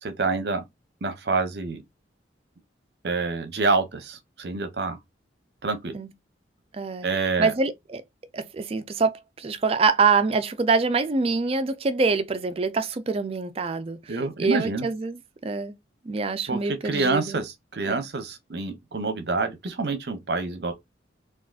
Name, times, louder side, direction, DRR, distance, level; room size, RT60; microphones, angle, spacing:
voice 1, 0.0-0.6 1.0-1.8 3.0-5.0 5.6-5.9 7.0-7.5 14.1-14.9 16.5-20.7, right 3 dB, 60° right, 0.7 m, -27 dB
voice 2, 6.7-7.1 7.4-8.0 8.3-15.7 16.1-17.4 17.9-18.0, right 4 dB, 30° right, 0.4 m, -25 dB
3.6 x 2.3 x 2.3 m
head